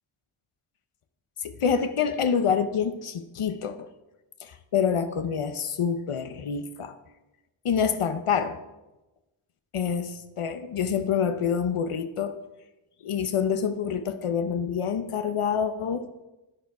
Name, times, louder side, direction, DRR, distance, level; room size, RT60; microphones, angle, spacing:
voice 1, 1.4-3.9 4.4-7.0 7.6-8.6 9.7-12.3 13.0-16.1, left 7 dB, 85° left, 9 dB, 0.9 m, -27 dB
11.0 x 10.5 x 4.8 m, 1.0 s
wide cardioid pair, 100°, 50 cm